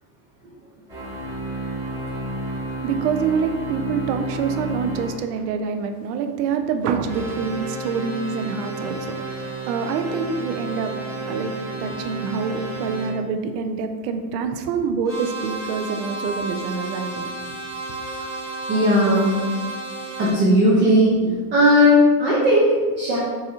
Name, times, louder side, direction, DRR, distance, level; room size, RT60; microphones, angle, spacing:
sound 1, 0.9-5.1 7.1-13.1 15.1-20.3, right 2 dB, 5° right, 1.0 m, -31 dB
voice 1, 2.8-10.9 11.2-11.5 11.8-17.3, right 6 dB, 75° right, 7 dB, 0.5 m, -26 dB
voice 2, 18.7-19.4 20.2-21.2 21.5-23.2, left 1 dB, 25° right, -7 dB, 0.3 m, -16 dB
4.0 x 2.8 x 2.4 m, 1.4 s
supercardioid pair, 145°, 48 cm